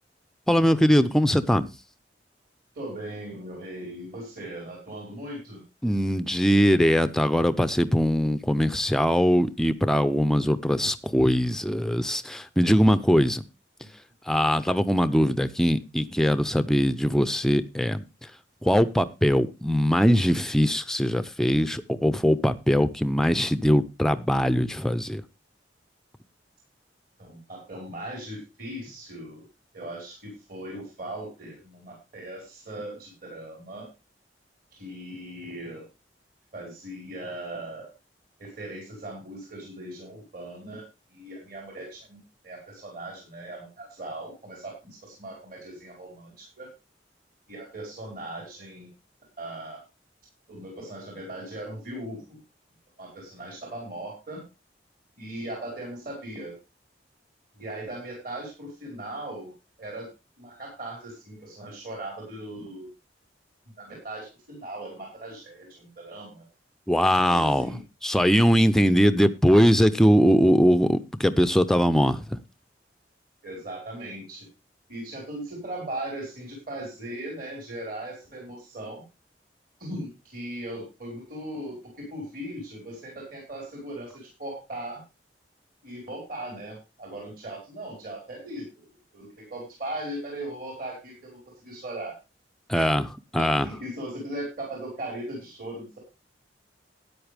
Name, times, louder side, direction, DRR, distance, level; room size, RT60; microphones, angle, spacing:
voice 1, 0.5-1.7 5.8-13.4 14.3-18.0 18.6-25.2 66.9-72.4 92.7-93.1 93.3-93.7, equal, 5° left, 0.6 m, -21 dB
voice 2, 2.7-5.6 13.8-13.9 27.2-29.4 29.7-33.9 34.7-35.8 36.5-37.9 38.4-40.8 41.1-46.7 47.5-48.9 49.4-49.8 50.5-52.4 53.0-54.4 55.2-56.5 57.5-59.5 59.8-60.1 60.4-62.9 63.8-66.4 67.2-67.8 73.4-74.5 74.9-79.0 79.8-85.0 85.8-91.4 91.6-92.1 92.7-92.9 93.4-96.0, right 1 dB, 50° right, 5.0 m, -38 dB
13.0 x 9.7 x 3.4 m
head